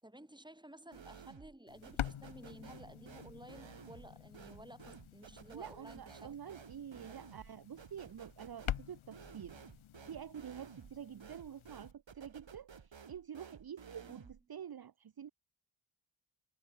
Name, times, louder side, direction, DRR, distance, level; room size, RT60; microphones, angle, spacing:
voice 1, 0.0-6.4 7.1-7.2 14.0-14.3, right 1 dB, 10° right, 5.8 m, -54 dB
sound 1, 0.9-1.6 1.8-14.4, right 6 dB, 65° right, 5.5 m, -55 dB
sound 2, 1.7-11.9, left 11 dB, 80° left, 1.0 m, -47 dB
voice 2, 5.5-9.6 10.1-15.3, right 9 dB, 50° right, 0.9 m, -48 dB
cardioid pair, 70°, 48 cm